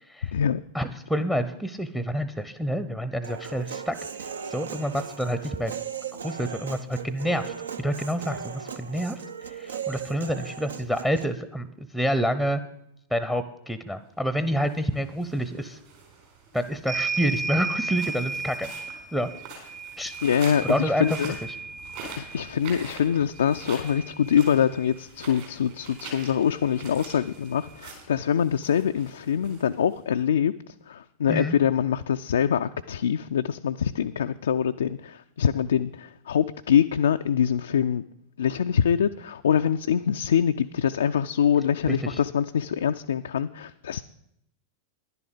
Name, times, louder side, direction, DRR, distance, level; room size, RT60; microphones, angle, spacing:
voice 1, 0.7-3.9 4.5-5.7 6.2-9.2 9.5-12.6 13.1-15.8 16.5-18.7 19.1-19.3 20.0-20.1 20.6-21.1 31.3-31.6 41.9-42.2, equal, 5° right, 14 dB, 0.7 m, -28 dB
Human voice, 3.2-11.3, right 7 dB, 70° right, 0.6 m, -37 dB
sound 1, 14.5-30.2, right 4 dB, 50° right, 4.4 m, -45 dB
sound 2, 16.9-25.0 26.3-26.4 26.6-27.7, right 4 dB, 25° right, 1.2 m, -35 dB
voice 2, 20.2-21.4 22.2-38.0 38.4-44.0, left 8 dB, 65° left, 8 dB, 0.3 m, -24 dB
11.0 x 11.0 x 5.2 m, 0.77 s
figure-of-eight pair, 90°, 0 cm